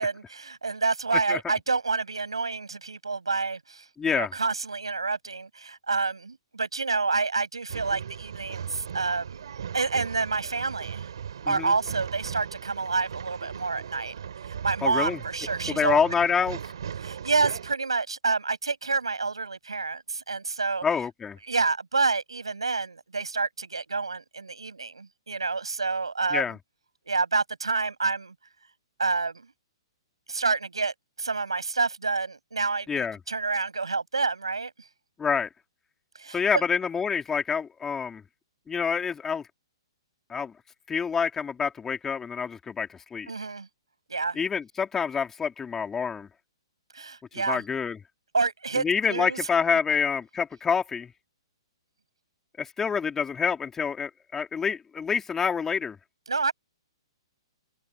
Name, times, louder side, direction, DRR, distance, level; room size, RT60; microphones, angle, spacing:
voice 1, 0.0-11.1 11.5-16.0 17.0-20.9 21.5-26.5 27.1-28.3 29.0-29.5 30.3-34.7 36.2-36.6 43.3-43.7 44.1-44.4 46.9-47.6 48.3-49.4 56.3-56.5, right 4 dB, 85° right, 6.9 m, -28 dB
voice 2, 4.0-4.3 11.4-11.7 14.8-15.2 15.7-16.6 20.8-21.4 26.3-26.6 32.9-33.2 35.2-35.5 36.3-38.2 38.7-39.4 40.3-40.5 40.9-43.3 44.3-46.3 47.5-48.0 48.8-51.1 52.6-56.0, left 6 dB, 15° left, 3.4 m, -27 dB
Male speech man speaking / Chatter / Rattle, 7.7-17.7, right 8 dB, 65° right, 2.9 m, -38 dB
figure-of-eight pair, 120°, 3 cm